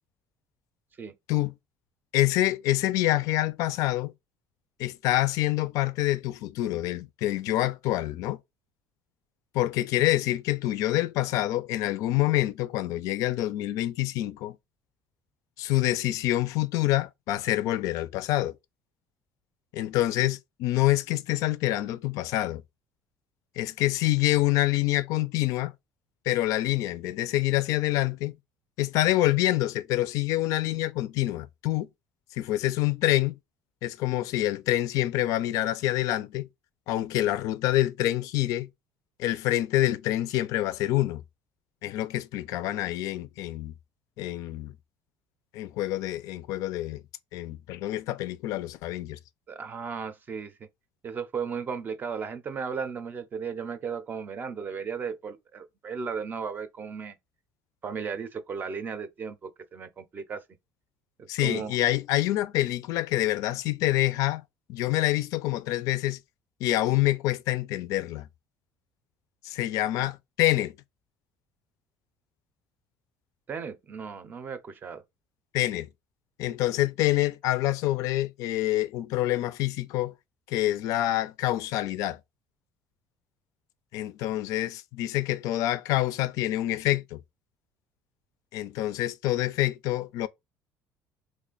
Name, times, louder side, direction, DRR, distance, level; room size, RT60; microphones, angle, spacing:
voice 1, 2.1-4.1 4.8-8.4 9.5-14.6 15.6-18.5 19.7-22.6 23.6-25.7 26.3-28.3 28.8-31.9 32.3-33.4 33.8-36.5 36.9-38.7 39.2-41.2 41.8-43.7 44.2-44.7 45.5-47.0 47.3-49.2 61.3-64.4 64.7-66.2 66.6-68.3 69.4-70.7 75.5-75.9 76.4-80.1 80.5-82.2 83.9-87.2 88.5-90.3, left 15 dB, 70° left, 0.4 m, -26 dB
voice 2, 49.5-50.5 51.0-57.2 57.8-60.4 61.2-61.8 73.5-75.0, right 6 dB, 30° right, 0.5 m, -35 dB
3.1 x 2.4 x 3.8 m
cardioid pair, 135°, 6 cm